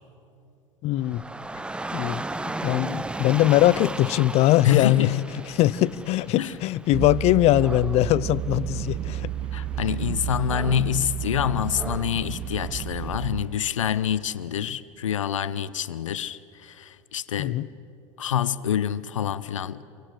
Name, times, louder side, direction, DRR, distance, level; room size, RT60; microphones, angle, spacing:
voice 1, 0.8-1.2 1.9-5.1 5.6-9.3 17.4-17.7, left 15 dB, 40° left, 0.6 m, -21 dB
Dog / Rain, 1.0-13.2, right 2 dB, 5° right, 0.7 m, -37 dB
voice 2, 4.6-5.3 6.4-6.6 9.5-17.6 18.2-19.8, left 10 dB, 75° left, 0.7 m, -26 dB
sound 1, 6.9-13.5, right 11 dB, 35° right, 1.2 m, -31 dB
27.0 x 24.5 x 8.1 m
figure-of-eight pair, 80°, 16 cm